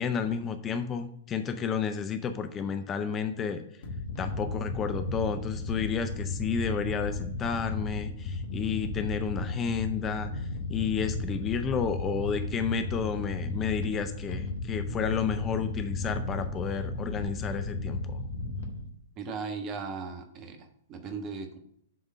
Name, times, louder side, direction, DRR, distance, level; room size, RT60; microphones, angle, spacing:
voice 1, 0.0-3.6 4.2-18.3, left 6 dB, 25° left, 9 dB, 0.5 m, -31 dB
sound 1, 3.8-18.9, left 2 dB, 60° left, 1.1 m, -34 dB
voice 2, 19.2-21.6, right 5 dB, 30° right, 6 dB, 1.1 m, -37 dB
7.7 x 3.7 x 6.2 m, 0.67 s
figure-of-eight pair, 105°, 0 cm